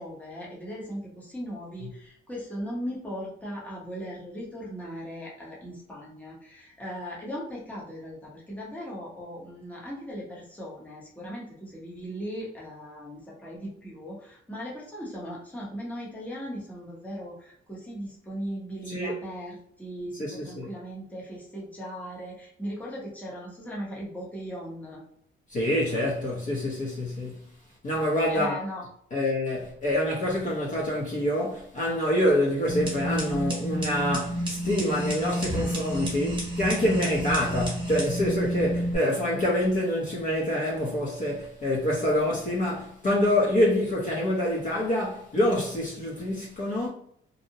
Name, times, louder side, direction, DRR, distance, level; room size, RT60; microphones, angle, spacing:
voice 1, 0.0-25.0 28.3-28.9, equal, 5° left, 0.8 m, -38 dB
voice 2, 20.2-20.7 25.5-27.3 27.8-28.6 29.1-46.9, left 1 dB, 40° left, 0.6 m, -26 dB
sound 1, 32.7-39.0, equal, 25° right, 1.0 m, -30 dB
2.6 x 2.0 x 2.7 m
cardioid pair, 160°, 21 cm